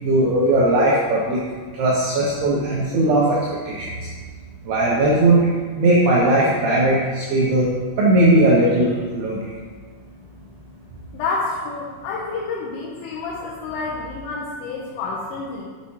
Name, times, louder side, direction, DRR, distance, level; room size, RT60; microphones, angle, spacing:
voice 1, 0.0-1.4 1.8-3.4 3.7-3.9 4.7-5.4 5.8-7.7 8.0-9.4, right 1 dB, 85° right, -5 dB, 2.4 m, -18 dB
voice 2, 11.1-15.6, left 3 dB, 80° left, -4 dB, 3.3 m, -29 dB
7.4 x 6.1 x 4.2 m, 1.5 s
omnidirectional pair, 5.9 m